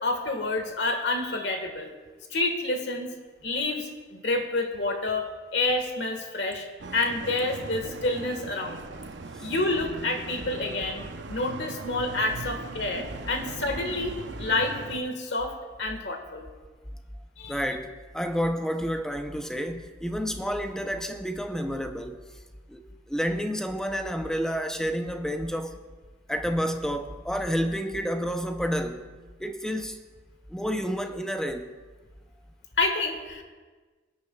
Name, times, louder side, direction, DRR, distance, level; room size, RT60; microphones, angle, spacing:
voice 1, 0.0-1.9 2.3-3.1 3.4-5.2 5.5-6.7 6.9-8.8 9.4-15.5 15.8-16.5 17.4-17.6 32.8-33.4, left 2 dB, 65° left, 1.5 m, -28 dB
sound 1, 6.8-15.0, right 3 dB, 65° right, 0.7 m, -39 dB
voice 2, 17.5-22.2 22.7-25.8 26.3-29.1 29.4-30.0 30.5-31.7, equal, 5° left, 0.6 m, -30 dB
22.0 x 10.0 x 2.3 m
head